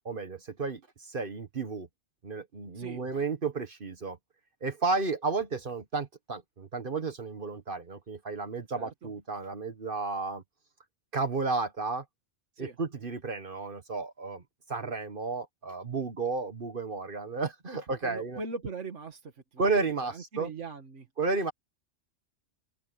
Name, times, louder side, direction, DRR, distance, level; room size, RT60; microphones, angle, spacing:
voice 1, 0.0-1.9 2.2-4.2 4.6-10.4 11.1-12.0 12.6-14.4 14.7-18.4 19.6-20.5 21.2-21.5, right 4 dB, 50° right, 1.4 m, -32 dB
voice 2, 8.7-9.1 12.6-12.8 18.0-19.7 20.0-21.1, right 4 dB, 80° right, 2.1 m, -40 dB
open air
omnidirectional pair, 1.2 m